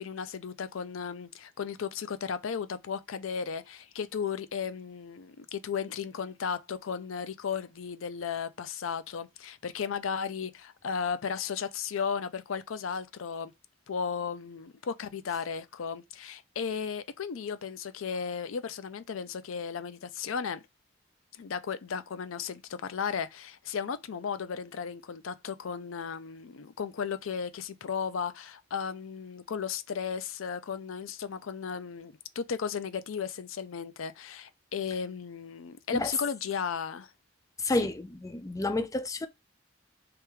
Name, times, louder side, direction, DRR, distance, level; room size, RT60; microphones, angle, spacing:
voice 1, 0.0-13.5 13.9-20.6 21.3-37.1 37.8-37.9, left 6 dB, 85° left, 0.5 m, -35 dB
voice 2, 37.6-39.3, left 2 dB, 15° left, 0.4 m, -30 dB
3.5 x 3.3 x 3.0 m
head